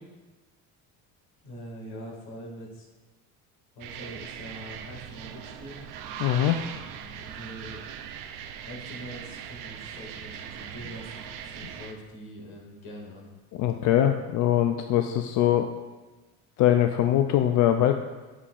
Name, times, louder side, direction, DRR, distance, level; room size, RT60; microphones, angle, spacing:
voice 1, 1.4-2.9 3.8-5.8 6.7-7.8 8.7-13.3, equal, 75° left, -1 dB, 2.2 m, -43 dB
sound 1, 3.8-11.9, right 8 dB, 60° right, 0.6 m, -40 dB
voice 2, 6.2-6.6 13.5-15.7 16.6-18.0, left 11 dB, 55° left, 6 dB, 0.4 m, -22 dB
8.4 x 7.3 x 2.4 m, 1.2 s
cardioid pair, 130°, 37 cm